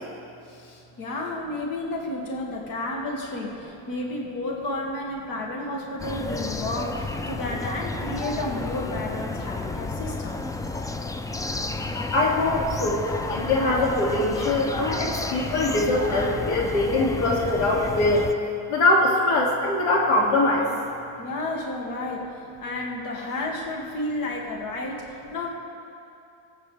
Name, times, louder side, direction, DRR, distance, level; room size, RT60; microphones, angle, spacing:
voice 1, 0.4-10.4 21.2-22.3 22.6-25.5, left 2 dB, 50° left, -1 dB, 2.2 m, -31 dB
sound 1, 6.0-18.3, left 2 dB, 10° left, 0.3 m, -31 dB
voice 2, 12.1-13.0 13.3-18.2 18.7-20.7, left 2 dB, 75° left, -2 dB, 2.5 m, -22 dB
23.5 x 8.6 x 3.3 m, 2.6 s
cardioid pair, 120°, 43 cm